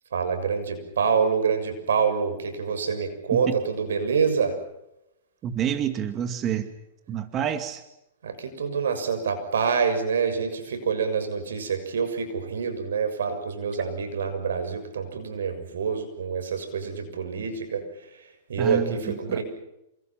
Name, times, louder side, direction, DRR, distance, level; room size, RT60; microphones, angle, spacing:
voice 1, 0.1-4.6 8.2-18.2 18.5-19.4, right 6 dB, 90° right, 8 dB, 6.8 m, -26 dB
voice 2, 5.4-6.7 7.1-7.8 18.6-19.0 19.3-19.4, right 8 dB, 25° right, 8 dB, 2.4 m, -28 dB
28.5 x 27.0 x 6.0 m, 0.87 s
hypercardioid pair, 140°, 0 cm